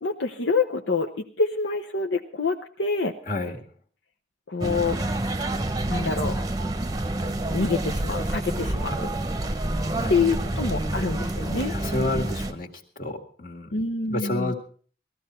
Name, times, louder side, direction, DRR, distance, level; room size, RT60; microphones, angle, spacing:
voice 1, 0.0-3.1 4.5-5.0 5.9-6.4 7.5-9.1 10.1-11.7 13.7-14.5, left 4 dB, 75° left, 3 dB, 0.9 m, -26 dB
voice 2, 3.3-3.6 9.9-10.1 10.5-11.0 11.7-13.7 14.1-14.5, left 2 dB, 45° left, 3 dB, 2.0 m, -30 dB
sound 1, 4.6-12.5, right 1 dB, 20° right, 0.9 m, -28 dB
19.0 x 14.0 x 4.4 m, 0.43 s
head